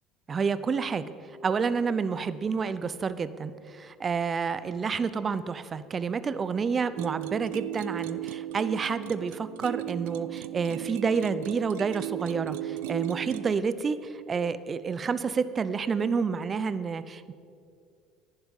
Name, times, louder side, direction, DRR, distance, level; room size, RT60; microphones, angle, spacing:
voice 1, 0.3-1.0 1.4-17.3, right 5 dB, 35° right, 14 dB, 0.6 m, -29 dB
sound 1, 7.0-13.6, right 14 dB, 80° right, 0.3 m, -36 dB
10.5 x 9.7 x 5.3 m, 2.3 s
hypercardioid pair, 70°, 0 cm